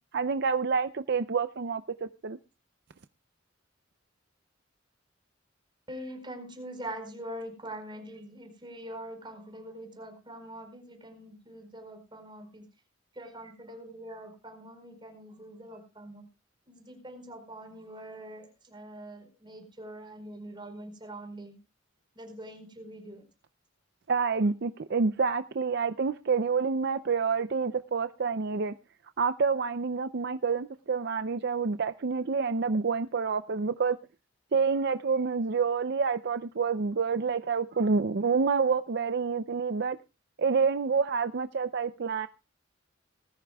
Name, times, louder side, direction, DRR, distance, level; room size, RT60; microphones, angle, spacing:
voice 1, 0.1-2.4 24.1-28.7 29.2-34.0 34.5-40.0 40.4-42.3, right 5 dB, 55° right, 10 dB, 0.5 m, -28 dB
voice 2, 5.9-12.6 13.1-16.2 16.7-21.6 22.1-23.2, right 1 dB, 25° right, 5 dB, 4.7 m, -43 dB
20.0 x 13.5 x 2.3 m, 0.30 s
head